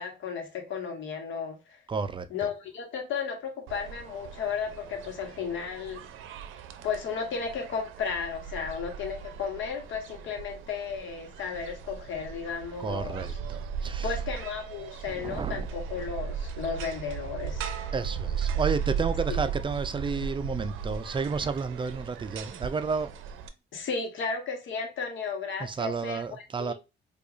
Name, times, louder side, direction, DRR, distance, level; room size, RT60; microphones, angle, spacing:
voice 1, 0.0-1.8 2.3-6.0 6.8-13.3 14.0-17.6 19.3-19.4 23.7-26.7, left 6 dB, 75° left, 1.1 m, -34 dB
voice 2, 1.9-2.3 12.8-14.1 15.1-15.7 17.9-23.1 25.6-26.7, right 5 dB, 25° right, 0.4 m, -31 dB
sound 1, 3.7-23.5, right 7 dB, 85° right, 0.5 m, -36 dB
4.7 x 2.4 x 2.5 m
cardioid pair, 90°, 20 cm